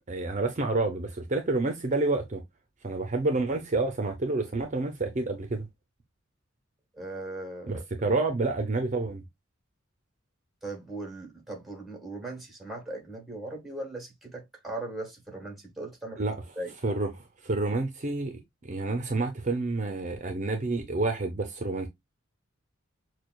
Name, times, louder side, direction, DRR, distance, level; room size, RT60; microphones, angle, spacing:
voice 1, 0.1-2.4 2.8-5.6 7.7-9.2 16.2-16.4 16.8-21.9, right 3 dB, 35° right, 0.6 m, -29 dB
voice 2, 7.0-7.8 10.6-16.2 16.6-16.7, right 2 dB, ahead, 1.2 m, -38 dB
6.5 x 2.2 x 2.2 m
head